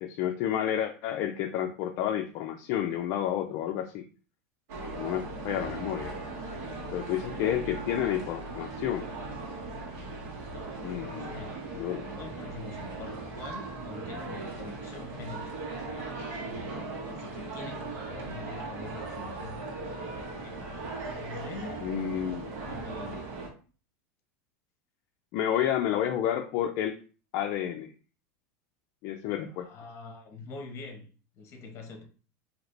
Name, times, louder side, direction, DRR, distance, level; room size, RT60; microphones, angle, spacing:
voice 1, 0.0-4.0 5.0-6.1 6.9-9.1 10.8-11.3 11.8-12.0 21.8-22.5 25.3-27.0 27.3-27.9 29.0-29.7, left 10 dB, 50° left, 0.4 m, -30 dB
sound 1, 4.7-23.5, right 3 dB, 80° right, 1.4 m, -38 dB
voice 2, 10.8-11.6 12.0-15.5 16.2-19.6 20.4-20.7 21.0-21.8 22.4-23.3 29.5-31.1 31.4-32.1, left 3 dB, 35° left, 1.1 m, -44 dB
3.2 x 2.8 x 3.9 m
supercardioid pair, 140°, 8 cm